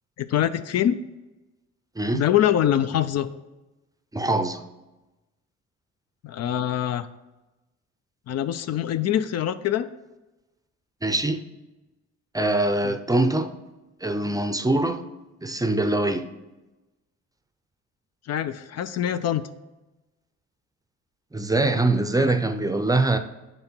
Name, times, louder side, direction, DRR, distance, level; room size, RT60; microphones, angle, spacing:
voice 1, 0.2-1.0 2.1-3.3 6.2-7.1 8.3-9.9 12.8-12.9 18.3-19.5, left 11 dB, 60° left, 0.5 m, -24 dB
voice 2, 4.1-4.6 11.0-11.4 12.3-13.5 14.0-15.0 15.4-16.3 21.3-23.2, right 2 dB, 10° right, 0.5 m, -23 dB
7.8 x 4.0 x 4.4 m
cardioid pair, 90°, 30 cm